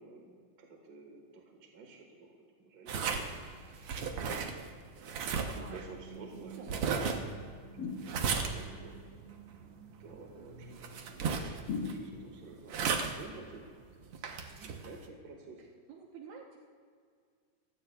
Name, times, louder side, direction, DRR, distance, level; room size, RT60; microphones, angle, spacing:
voice 1, 0.0-3.3 3.9-4.3 4.8-7.4 7.7-9.2 9.5-9.7 10.0-12.8 13.0-13.8 14.1-15.6, right 3 dB, 40° right, 1 dB, 1.8 m, -52 dB
sound 1, 2.9-15.1, right 5 dB, 65° right, 1.6 m, -37 dB
voice 2, 5.5-5.8 6.4-7.1 15.9-16.6, right 5 dB, 80° right, -1 dB, 2.4 m, -50 dB
sound 2, 7.8-8.6 11.7-12.6, left 5 dB, 40° left, 1.6 m, -39 dB
29.5 x 16.0 x 2.4 m, 2.1 s
omnidirectional pair, 3.3 m